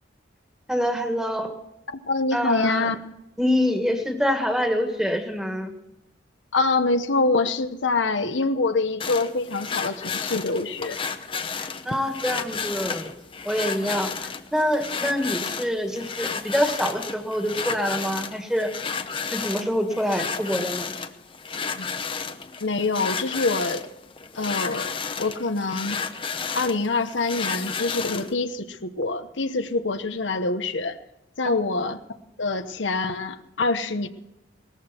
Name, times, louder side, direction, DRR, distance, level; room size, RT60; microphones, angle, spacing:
voice 1, 0.7-1.5 2.3-2.9 3.4-5.7 11.6-13.1 13.5-18.7 19.3-20.9 31.5-31.6, equal, 5° right, 4 dB, 1.9 m, -26 dB
voice 2, 1.9-3.0 6.5-11.0 21.8-21.9 22.6-23.9 24.3-26.0 26.5-31.0 31.4-32.0 32.4-34.1, left 3 dB, 80° left, 8 dB, 1.0 m, -25 dB
sound 1, 9.0-28.3, left 5 dB, 30° left, 0.8 m, -32 dB
19.0 x 14.0 x 4.5 m, 0.91 s
head